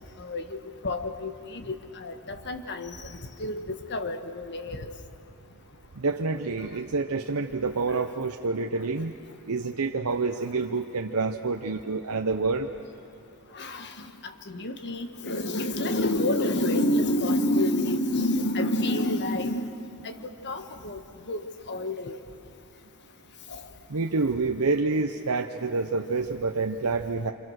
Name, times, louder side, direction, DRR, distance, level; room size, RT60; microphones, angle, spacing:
voice 1, 0.2-4.9 7.9-8.0 9.0-9.1 13.5-19.7 20.0-20.2 20.4-21.0 21.3-22.2 23.5-23.6, left 1 dB, 50° left, 8 dB, 1.5 m, -29 dB
voice 2, 6.0-9.1 9.5-12.7 23.9-27.3, right 3 dB, 80° right, 4 dB, 0.8 m, -28 dB
28.0 x 27.5 x 6.5 m, 2.7 s
head